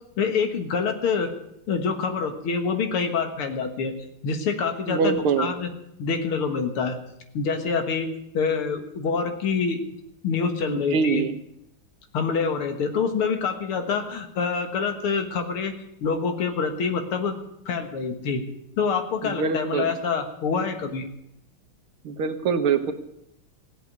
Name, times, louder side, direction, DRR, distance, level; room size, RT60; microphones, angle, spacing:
voice 1, 0.2-1.3 1.7-3.9 4.2-5.7 6.0-7.0 7.3-8.1 8.3-9.8 10.2-11.2 12.1-15.7 16.0-17.3 17.7-18.4 18.8-21.1, left 5 dB, 80° left, 7 dB, 2.4 m, -26 dB
voice 2, 4.9-5.5 10.7-11.3 19.2-19.9 22.0-22.9, right 5 dB, 80° right, 8 dB, 2.1 m, -24 dB
16.5 x 8.2 x 9.5 m, 0.79 s
omnidirectional pair, 2.3 m